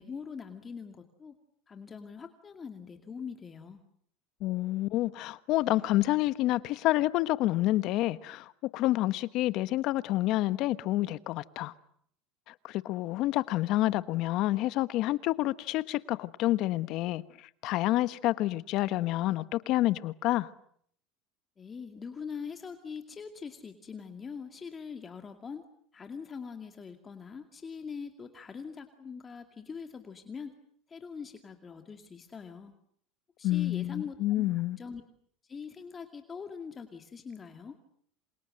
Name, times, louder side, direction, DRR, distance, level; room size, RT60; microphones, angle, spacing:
voice 1, 0.0-1.3 1.7-3.8 21.6-25.6 25.9-30.5 30.9-32.7 33.4-35.0 35.4-37.8, left 6 dB, 25° left, 2.3 m, -43 dB
voice 2, 4.4-11.7 12.5-20.5 33.4-34.8, left 16 dB, 60° left, 1.2 m, -28 dB
28.0 x 27.0 x 7.8 m
supercardioid pair, 115°, 0 cm